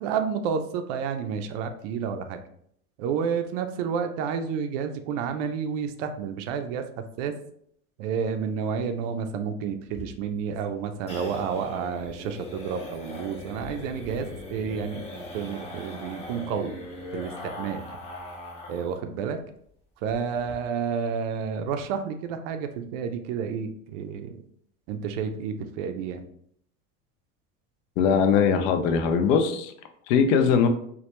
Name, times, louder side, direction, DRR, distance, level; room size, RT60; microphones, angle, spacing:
voice 1, 0.0-2.4 3.0-7.3 8.0-16.7 17.1-17.8 18.7-19.4 20.0-24.4 24.9-26.2, right 6 dB, 60° right, 7 dB, 0.5 m, -30 dB
sound 1, 9.9-19.0 19.3-19.4 19.7-19.8 20.1-20.5, left 2 dB, 15° left, 0.5 m, -40 dB
voice 2, 28.0-29.7 30.1-30.7, left 6 dB, 60° left, 7 dB, 0.5 m, -21 dB
2.2 x 2.1 x 2.8 m, 0.66 s
hypercardioid pair, 95°, 43 cm